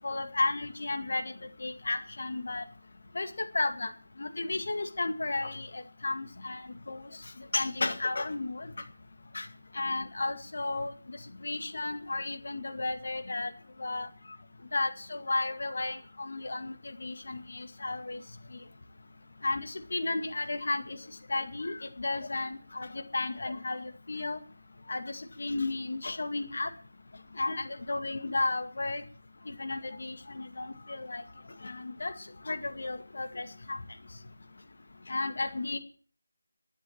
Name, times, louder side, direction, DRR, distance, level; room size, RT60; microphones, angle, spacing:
voice 1, 0.0-1.3 1.6-2.6 3.1-3.3 3.5-3.9 4.2-7.1 7.5-8.7 9.3-9.5 9.7-13.5 13.8-14.1 14.7-18.2 19.4-21.0 21.3-24.4 24.9-26.7 27.4-29.0 29.5-31.2 31.6-32.1 32.5-33.8 35.1-35.8, left 2 dB, 55° left, 6 dB, 2.0 m, -33 dB
11.5 x 10.5 x 7.5 m, 0.43 s
figure-of-eight pair, 165°, 0 cm